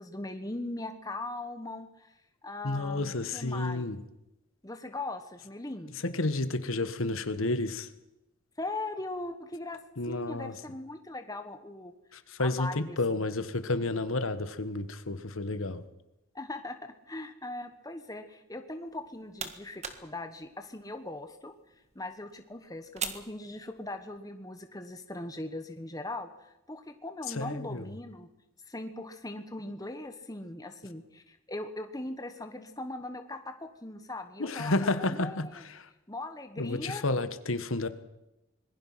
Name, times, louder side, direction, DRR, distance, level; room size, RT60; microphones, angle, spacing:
voice 1, 0.0-3.8 4.6-5.9 8.6-9.8 10.1-11.9 12.4-13.2 16.3-21.5 21.9-28.3 28.7-35.6 36.1-37.0, left 2 dB, 15° left, 7 dB, 1.3 m, -40 dB
voice 2, 2.6-4.0 6.0-7.9 10.0-10.5 12.1-15.8 27.3-27.8 34.4-35.9 36.6-37.9, left 2 dB, 70° left, 11 dB, 1.4 m, -31 dB
sound 1, 18.9-24.2, right 7 dB, 30° right, 1.6 m, -44 dB
25.5 x 21.0 x 5.9 m, 0.87 s
head